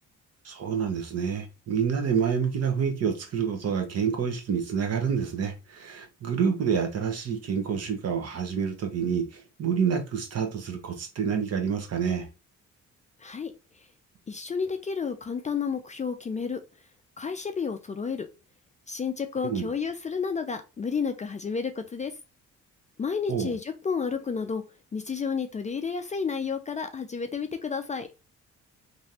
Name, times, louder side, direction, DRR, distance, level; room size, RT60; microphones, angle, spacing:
voice 1, 0.4-12.3 19.4-19.7 23.3-23.5, right 7 dB, 55° right, 1.0 m, -28 dB
voice 2, 13.2-13.9 14.3-16.6 17.2-18.3 18.9-22.1 23.0-24.6 24.9-28.1, left 5 dB, 25° left, 0.4 m, -31 dB
3.1 x 2.6 x 2.7 m
cardioid pair, 90°, 30 cm